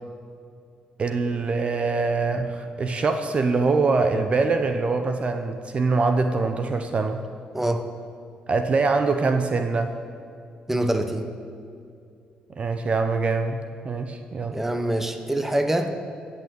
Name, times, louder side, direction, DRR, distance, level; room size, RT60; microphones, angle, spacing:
voice 1, 1.0-7.2 8.5-9.9 12.6-14.6, right 4 dB, 45° right, 6 dB, 1.0 m, -24 dB
voice 2, 7.5-7.9 10.7-11.3 14.5-16.0, right 1 dB, 10° right, 7 dB, 1.3 m, -25 dB
16.0 x 7.1 x 8.4 m, 2.4 s
cardioid pair, 80°, 3 cm